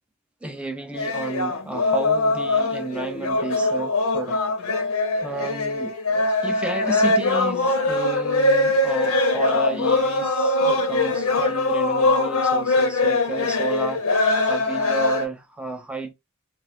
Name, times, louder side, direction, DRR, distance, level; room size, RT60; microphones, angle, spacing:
voice 1, 0.4-4.7 5.2-6.0 6.4-16.1, right 2 dB, 5° right, 0.4 m, -32 dB
sound 1, 0.9-15.3, left 2 dB, 90° left, 0.8 m, -22 dB
2.4 x 2.3 x 3.9 m
head